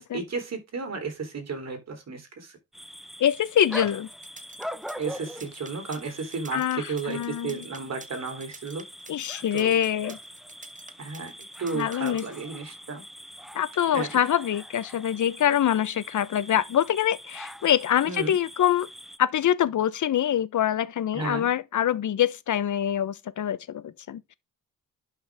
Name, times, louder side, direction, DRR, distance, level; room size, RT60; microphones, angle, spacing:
voice 1, 0.0-2.6 5.0-8.8 9.5-9.7 11.0-11.3 11.6-13.0 13.9-14.3 18.0-18.3 21.1-21.5, right 4 dB, 45° right, 3.5 m, -33 dB
sound 1, 2.7-19.2, equal, ahead, 0.8 m, -43 dB
voice 2, 3.2-4.1 6.5-7.6 9.1-10.2 11.7-12.2 13.5-18.9 19.2-24.3, left 10 dB, 55° left, 1.0 m, -25 dB
sound 2, 4.1-12.4, right 4 dB, 20° right, 1.2 m, -48 dB
11.5 x 5.6 x 3.5 m
cardioid pair, 105°, 36 cm